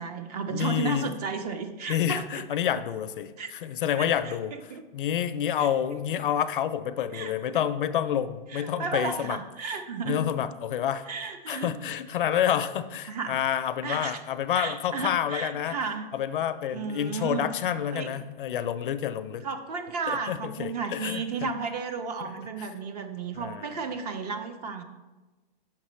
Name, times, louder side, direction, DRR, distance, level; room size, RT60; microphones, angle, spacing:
voice 1, 0.0-2.4 3.4-3.5 4.0-4.8 5.6-5.7 7.1-7.7 8.5-10.2 11.1-11.7 13.1-13.4 13.8-14.2 14.5-16.1 16.7-17.5 17.9-18.1 19.4-24.8, right 5 dB, 45° right, 8 dB, 0.6 m, -33 dB
voice 2, 0.5-1.1 1.9-4.5 4.9-9.4 10.1-11.1 11.5-15.8 16.1-19.5 20.1-21.5 22.2-22.3 22.6-22.7 23.4-23.9, left 9 dB, 60° left, 12 dB, 0.4 m, -28 dB
6.5 x 5.9 x 3.1 m, 1.2 s
hypercardioid pair, 155°, 29 cm